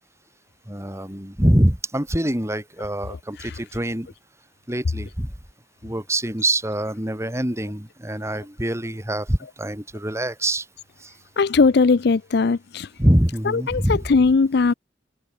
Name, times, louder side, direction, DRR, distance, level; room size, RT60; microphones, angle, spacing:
voice 1, 0.7-4.1 4.7-5.3 5.8-10.6 11.0-11.1 13.0-14.0, right 1 dB, 15° right, 3.0 m, -24 dB
voice 2, 11.4-12.9 13.5-14.7, left 4 dB, 60° left, 0.5 m, -19 dB
open air
head